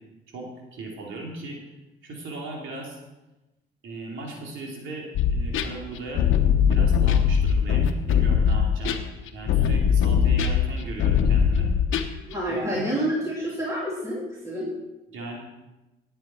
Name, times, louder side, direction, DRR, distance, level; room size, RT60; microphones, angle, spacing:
voice 1, 0.3-1.6 2.0-3.0 3.8-6.2 6.7-9.0 9.3-11.7 12.5-12.9 15.1-15.4, right 2 dB, 80° right, -1 dB, 3.0 m, -37 dB
sound 1, 5.2-12.3, left 7 dB, 85° left, 1.0 m, -21 dB
voice 2, 12.3-14.7, right 1 dB, 15° right, -6 dB, 3.2 m, -28 dB
17.0 x 7.9 x 4.5 m, 1.0 s
cardioid pair, 90°, 20 cm